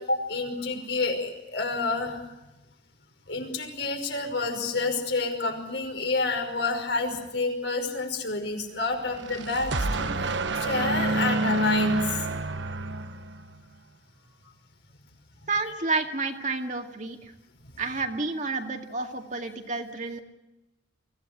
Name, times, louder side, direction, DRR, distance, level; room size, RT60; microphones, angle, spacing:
voice 1, 0.0-2.2 3.3-10.3 10.6-12.3, left 3 dB, 75° left, 3 dB, 5.5 m, -29 dB
sound 1, 9.0-13.6, right 2 dB, 85° right, 1.1 m, -28 dB
voice 2, 15.5-17.3 17.8-20.2, right 3 dB, 45° right, 4 dB, 2.1 m, -30 dB
24.0 x 16.0 x 9.2 m, 1.0 s
head